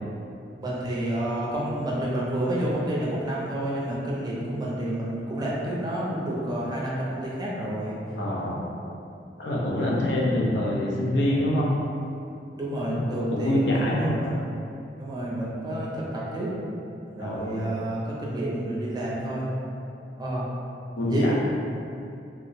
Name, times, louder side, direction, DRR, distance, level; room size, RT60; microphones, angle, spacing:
voice 1, 0.6-8.0 9.7-10.1 12.6-14.3 15.0-16.5 17.1-19.5 20.2-20.5 21.1-21.3, right 1 dB, 25° right, -6 dB, 0.5 m, -29 dB
voice 2, 8.2-8.6 9.4-11.7 12.9-14.3 17.2-17.7 21.0-21.3, left 1 dB, 70° left, -4 dB, 0.5 m, -26 dB
2.4 x 2.0 x 3.9 m, 2.6 s
head